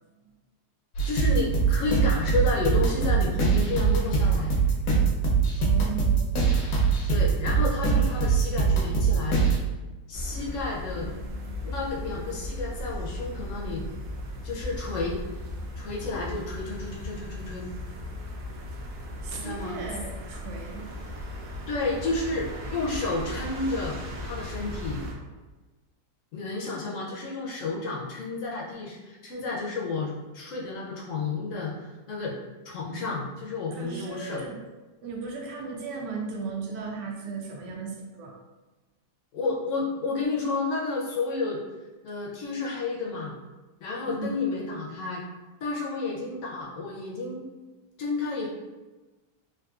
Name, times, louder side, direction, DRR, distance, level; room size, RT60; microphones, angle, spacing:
sound 1, 0.9-9.6, right 5 dB, 85° left, 1.3 m, -23 dB
voice 1, 1.0-4.6 7.1-9.4 10.1-11.1 11.6-13.8 14.4-15.2 15.8-17.7 19.3-19.8 21.7-25.0 26.3-32.4 32.6-34.5 39.3-41.6 42.0-43.3 43.8-45.2 45.6-47.5 48.0-48.5, left 3 dB, 65° left, -3 dB, 0.8 m, -31 dB
voice 2, 5.6-6.3 19.2-20.9 33.7-34.6 35.0-38.4 44.1-44.4, right 4 dB, 90° right, 0 dB, 1.2 m, -36 dB
sound 2, 10.1-25.1, left 1 dB, 75° right, 0.6 m, -37 dB
3.6 x 2.6 x 2.3 m, 1.2 s
omnidirectional pair, 1.8 m